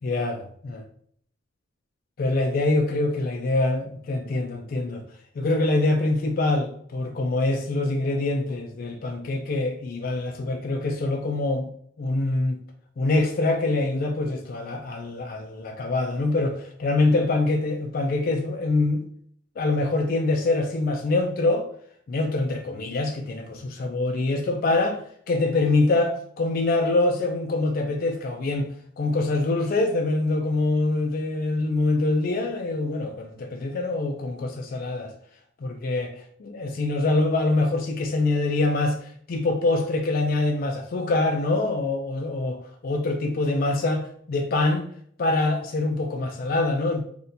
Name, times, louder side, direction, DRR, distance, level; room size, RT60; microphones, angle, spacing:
voice 1, 0.0-0.4 2.2-5.0 5.4-11.7 12.0-12.6 13.0-19.1 19.6-21.6 22.1-28.7 29.0-35.1 35.6-44.8 45.2-47.0, left 2 dB, 45° left, 3 dB, 0.3 m, -24 dB
2.7 x 2.1 x 3.9 m, 0.63 s
head